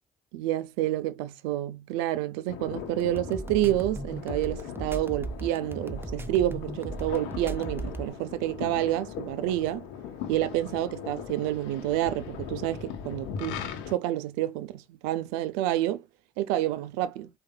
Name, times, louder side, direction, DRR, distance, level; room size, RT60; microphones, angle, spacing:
voice 1, 0.3-9.9 10.3-16.0 16.4-17.3, right 14 dB, 80° right, 0.4 m, -29 dB
sound 1, 2.5-13.9, left 8 dB, 80° left, 0.9 m, -39 dB
sound 2, 3.0-8.1, right 2 dB, 10° right, 0.7 m, -37 dB
4.8 x 2.5 x 2.3 m
hypercardioid pair, 45°, 19 cm